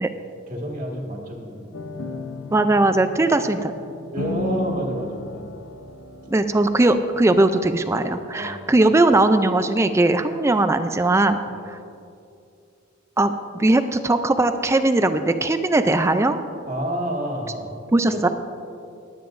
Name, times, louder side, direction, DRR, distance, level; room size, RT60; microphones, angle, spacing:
voice 1, 0.5-2.2 4.1-5.5 8.4-8.9 11.5-11.7 16.7-17.7, equal, 40° right, 0 dB, 1.7 m, -29 dB
sound 1, 1.7-7.7, left 2 dB, 80° left, 0.8 m, -35 dB
voice 2, 2.5-3.7 6.3-11.4 11.7-11.8 13.2-16.4 17.9-18.3, right 2 dB, 15° right, 9 dB, 0.3 m, -19 dB
20.5 x 8.9 x 2.6 m, 2.5 s
head